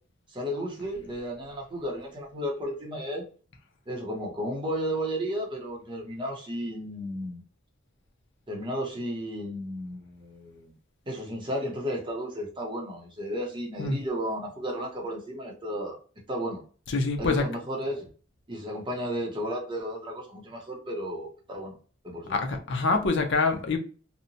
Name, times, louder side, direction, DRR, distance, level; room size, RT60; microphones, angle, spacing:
voice 1, 0.3-3.2 3.9-7.4 8.5-10.7 11.1-16.0 16.3-16.6 17.2-18.1 18.5-21.7 22.0-22.4, equal, 25° right, 0.7 m, -33 dB
voice 2, 16.9-17.4 22.3-23.8, left 3 dB, 60° left, 0.5 m, -25 dB
2.8 x 2.1 x 2.6 m
head